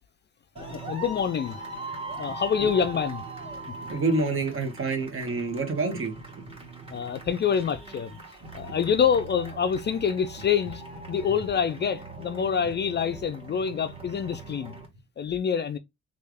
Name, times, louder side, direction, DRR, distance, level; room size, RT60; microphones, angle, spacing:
sound 1, 0.6-14.9, right 3 dB, 20° right, 1.5 m, -41 dB
voice 1, 0.7-1.6 2.1-3.2 3.7-3.8 6.9-8.2 8.5-14.7 15.2-15.8, left 7 dB, 35° left, 0.4 m, -26 dB
voice 2, 3.9-6.1, right 3 dB, 45° right, 1.1 m, -27 dB
3.2 x 2.4 x 3.3 m
cardioid pair, 90°, 30 cm